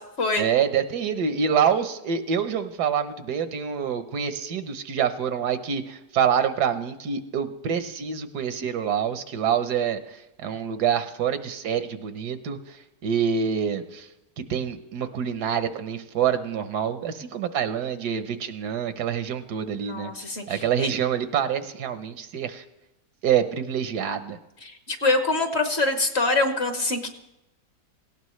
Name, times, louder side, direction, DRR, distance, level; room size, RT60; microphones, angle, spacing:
voice 1, 0.4-12.8 13.0-14.1 14.4-20.1 20.5-22.6 23.2-24.4, right 8 dB, 75° right, 10 dB, 1.4 m, -26 dB
voice 2, 19.8-20.9 24.6-27.1, left 2 dB, 40° left, 6 dB, 1.5 m, -25 dB
18.0 x 17.0 x 3.2 m, 0.94 s
omnidirectional pair, 1.7 m